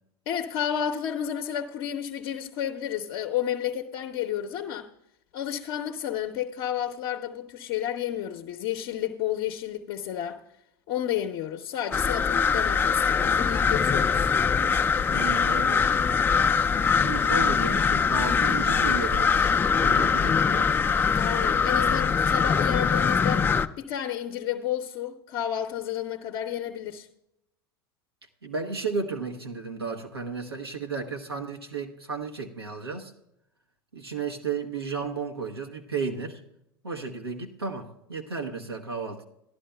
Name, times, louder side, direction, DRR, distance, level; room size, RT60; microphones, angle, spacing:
voice 1, 0.3-4.9 5.3-10.4 10.9-14.3 21.1-23.5 23.8-27.1, left 10 dB, 50° left, 0.7 m, -31 dB
sound 1, 11.9-23.7, left 6 dB, 15° left, 0.4 m, -23 dB
voice 2, 15.1-15.8 16.3-16.6 17.0-19.5 19.8-20.8 28.4-33.1 33.9-36.4 36.8-39.2, right 5 dB, 85° right, 0.9 m, -33 dB
16.0 x 11.5 x 2.2 m
figure-of-eight pair, 80°, 13 cm